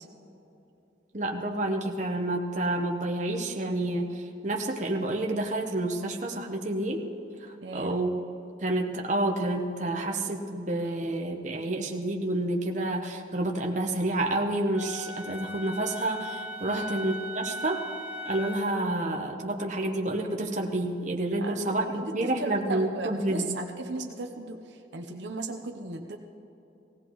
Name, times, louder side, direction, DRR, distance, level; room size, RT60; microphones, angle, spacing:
voice 1, 1.1-4.1 4.4-7.0 7.7-8.1 8.6-17.8 18.3-23.6, right 1 dB, 40° right, 1 dB, 1.0 m, -29 dB
voice 2, 7.6-8.0 16.7-17.0 21.4-26.2, right 3 dB, 70° right, 4 dB, 0.8 m, -37 dB
Wind instrument woodwind instrument, 14.7-18.8, equal, 5° right, 1.4 m, -38 dB
17.5 x 17.0 x 3.1 m, 2.8 s
head